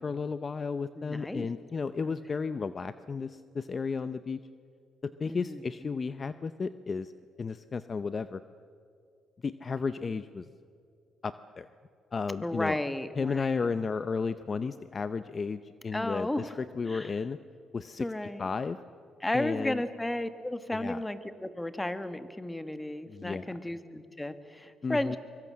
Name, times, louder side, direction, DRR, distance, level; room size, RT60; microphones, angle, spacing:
voice 1, 0.0-4.4 5.0-7.1 7.4-8.4 9.4-10.5 11.2-11.7 12.1-12.8 13.2-17.4 17.7-18.1 18.4-18.8 19.3-19.8 20.7-21.0 23.1-23.5 24.8-25.2, left 5 dB, 35° left, 12 dB, 0.6 m, -33 dB
voice 2, 1.0-1.5 2.3-2.4 5.3-6.0 12.4-13.7 15.9-16.6 16.9-17.1 18.0-18.4 19.2-25.2, left 1 dB, 10° left, 11 dB, 1.4 m, -34 dB
24.0 x 22.5 x 7.6 m, 2.4 s
cardioid pair, 90°, 0 cm